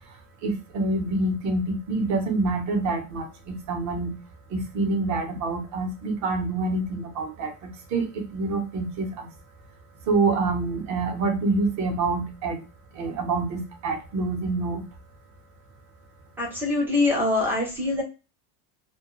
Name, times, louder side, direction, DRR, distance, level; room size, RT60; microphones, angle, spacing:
voice 1, 0.1-4.2 4.5-9.3 10.1-12.6 12.9-14.8, right 3 dB, 35° right, 5 dB, 0.7 m, -27 dB
voice 2, 16.4-18.0, left 2 dB, 5° right, -1 dB, 0.3 m, -24 dB
2.2 x 2.1 x 2.9 m, 0.29 s
cardioid pair, 150°, 48 cm